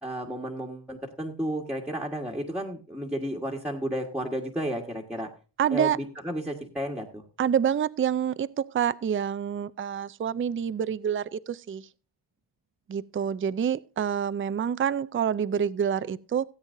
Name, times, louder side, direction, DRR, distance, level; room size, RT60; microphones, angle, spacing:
voice 1, 0.0-5.3 5.7-7.2, equal, ahead, 1.4 m, -32 dB
voice 2, 5.6-6.0 7.4-11.8 12.9-16.4, right 8 dB, 30° right, 0.4 m, -27 dB
17.0 x 8.9 x 2.6 m
wide cardioid pair, 160°, 44 cm